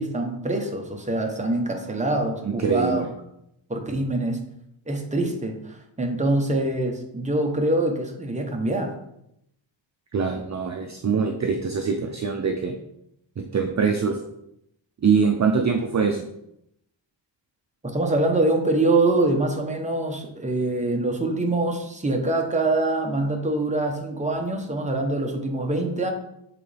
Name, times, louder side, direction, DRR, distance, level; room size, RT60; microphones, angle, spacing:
voice 1, 0.0-3.0 3.7-4.4 4.9-8.9 17.8-26.1, right 2 dB, 15° right, 2 dB, 0.9 m, -24 dB
voice 2, 2.4-3.1 10.1-12.7 13.4-14.2 15.0-16.3, right 5 dB, 40° right, 4 dB, 0.5 m, -23 dB
7.6 x 3.9 x 3.4 m, 0.79 s
wide cardioid pair, 125°, 45 cm